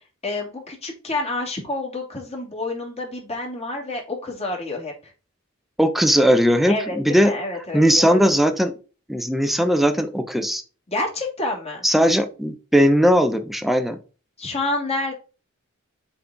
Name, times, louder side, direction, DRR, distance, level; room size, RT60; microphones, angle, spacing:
voice 1, 0.2-5.1 6.7-8.3 10.9-11.9 14.4-15.1, left 2 dB, 30° left, 0 dB, 2.8 m, -28 dB
voice 2, 5.8-7.3 7.7-8.7 9.1-10.6 11.8-14.0, equal, ahead, 6 dB, 0.8 m, -18 dB
7.6 x 4.4 x 3.6 m, 0.34 s
head